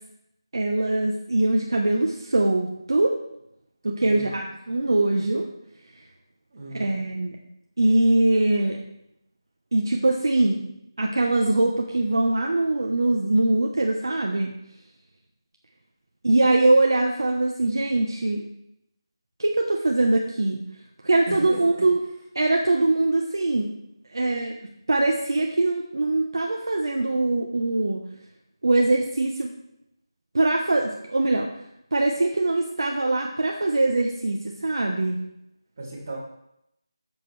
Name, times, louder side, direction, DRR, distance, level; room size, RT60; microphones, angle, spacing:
voice 1, 0.5-3.2 3.8-5.5 6.7-7.4 7.8-8.8 9.7-10.6 11.0-14.5 16.2-18.5 19.4-20.6 21.0-22.0 22.3-23.7 24.1-24.5 24.9-28.0 28.6-29.5 30.3-31.5 31.9-35.2, right 2 dB, 55° right, 0 dB, 1.1 m, -22 dB
voice 2, 4.0-4.4 6.5-7.0 21.3-21.9 35.8-36.2, right 1 dB, 30° right, -5 dB, 2.8 m, -36 dB
10.5 x 7.6 x 3.3 m, 0.80 s
figure-of-eight pair, 175°, 3 cm